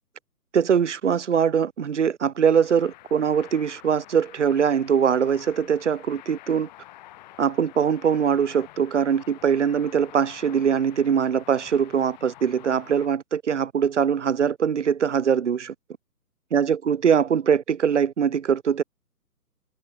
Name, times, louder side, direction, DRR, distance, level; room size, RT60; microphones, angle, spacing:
voice 1, 0.5-6.7 7.4-15.7 16.5-18.8, right 7 dB, 45° right, 2.5 m, -22 dB
sound 1, 2.5-13.1, left 16 dB, 25° left, 7.7 m, -48 dB
figure-of-eight pair, 145°, 48 cm